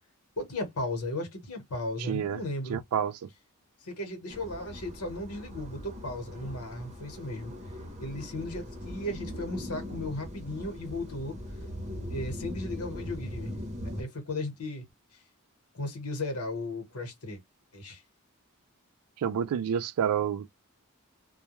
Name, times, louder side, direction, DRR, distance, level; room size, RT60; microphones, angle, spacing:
voice 1, 0.4-2.8 3.8-7.5 8.0-11.4 12.1-13.6 14.0-14.8 15.7-17.4 17.7-18.0, left 2 dB, 85° left, 1.1 m, -36 dB
voice 2, 2.0-2.4 2.7-3.1 19.2-20.6, right 8 dB, 90° right, 0.3 m, -29 dB
sound 1, 4.3-14.0, equal, 30° right, 0.7 m, -40 dB
2.2 x 2.1 x 2.9 m
head